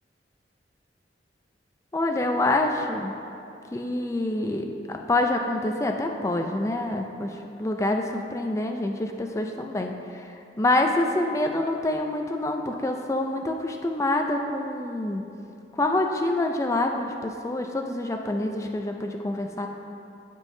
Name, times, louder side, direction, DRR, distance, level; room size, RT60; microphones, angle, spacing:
voice 1, 1.9-3.1 3.7-7.3 7.6-9.9 10.6-15.2 15.8-19.7, left 2 dB, 15° left, 3 dB, 0.4 m, -26 dB
16.5 x 5.5 x 2.7 m, 2.7 s
head